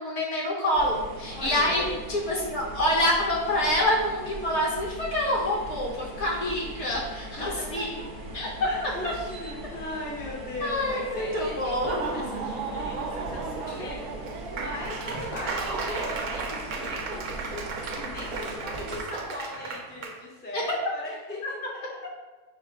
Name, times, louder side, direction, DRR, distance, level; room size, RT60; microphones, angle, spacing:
voice 1, 0.0-1.8 2.1-8.0 8.3-8.5 8.8-8.9 10.6-12.0 13.7-13.8 20.5-20.6, left 1 dB, 50° left, -4 dB, 1.2 m, -27 dB
sound 1, 0.7-19.0, right 1 dB, 50° right, 0.8 m, -40 dB
voice 2, 1.3-2.0 7.2-8.1 8.3-14.0 14.5-21.4 21.7-21.9, left 2 dB, 10° left, -5 dB, 0.5 m, -38 dB
Laughter / Applause, 11.7-20.2, right 4 dB, 75° right, 1.0 m, -34 dB
5.6 x 2.1 x 4.5 m, 1.3 s
omnidirectional pair, 1.6 m